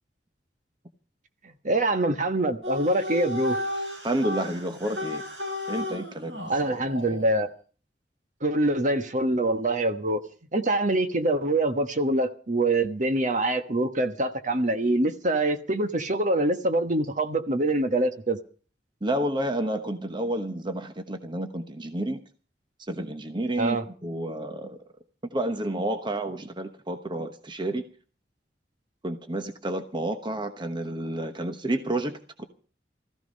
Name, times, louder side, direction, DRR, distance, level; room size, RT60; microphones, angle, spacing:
voice 1, 1.6-3.6 6.5-7.5 8.4-10.2 10.5-18.4 23.6-23.8, right 2 dB, 45° right, 1.3 m, -25 dB
sound 1, 2.6-7.3, left 1 dB, 75° right, 7.4 m, -34 dB
voice 2, 4.0-5.2 5.7-6.3 7.1-7.2 19.0-22.2 22.8-24.8 25.3-27.8 29.0-32.4, right 1 dB, 25° right, 1.1 m, -30 dB
15.0 x 15.0 x 5.4 m
head